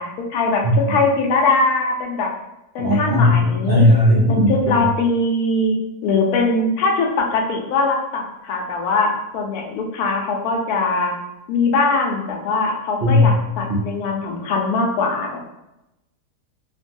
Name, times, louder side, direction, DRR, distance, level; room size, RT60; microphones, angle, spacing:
voice 1, 0.0-2.3 2.7-3.9 4.3-5.7 6.0-11.1 11.5-15.5, left 3 dB, 75° left, 0 dB, 1.1 m, -21 dB
voice 2, 2.8-3.4 3.7-4.5 13.0-13.3, left 1 dB, 90° right, -5 dB, 0.5 m, -15 dB
3.0 x 2.2 x 2.6 m, 0.90 s
omnidirectional pair, 1.7 m